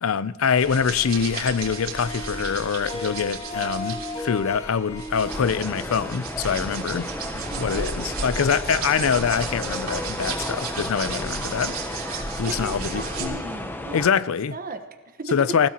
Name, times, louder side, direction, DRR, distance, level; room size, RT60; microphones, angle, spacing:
voice 1, 0.0-7.1 7.6-12.0 12.4-13.4 13.9-14.5 15.3-15.7, left 6 dB, 75° left, 0.5 m, -24 dB
sound 1, 0.5-13.2, right 4 dB, 75° right, 3.4 m, -34 dB
Harp, 0.9-7.2, left 2 dB, 30° left, 1.8 m, -37 dB
sound 2, 5.3-14.1, left 1 dB, 10° left, 0.8 m, -33 dB
voice 2, 7.3-8.0 12.5-14.0 14.5-15.6, right 2 dB, 45° right, 1.2 m, -36 dB
27.0 x 16.0 x 2.9 m
head